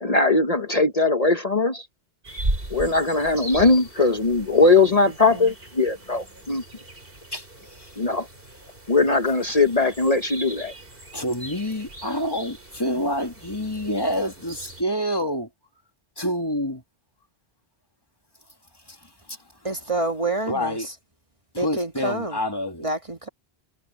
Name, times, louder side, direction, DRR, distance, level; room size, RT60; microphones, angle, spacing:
voice 1, 0.0-1.9 2.7-6.6 8.0-8.3 8.9-10.7, left 3 dB, 40° left, 1.3 m, -20 dB
sound 1, 2.2-14.8, right 1 dB, 65° right, 4.8 m, -37 dB
voice 2, 7.3-7.9 11.1-15.5 16.2-16.8 18.9-19.4 20.5-20.9 21.5-22.9, equal, 25° left, 2.2 m, -28 dB
voice 3, 19.6-20.8 21.6-22.4 22.8-23.3, right 2 dB, 30° right, 1.6 m, -27 dB
omnidirectional pair, 1.0 m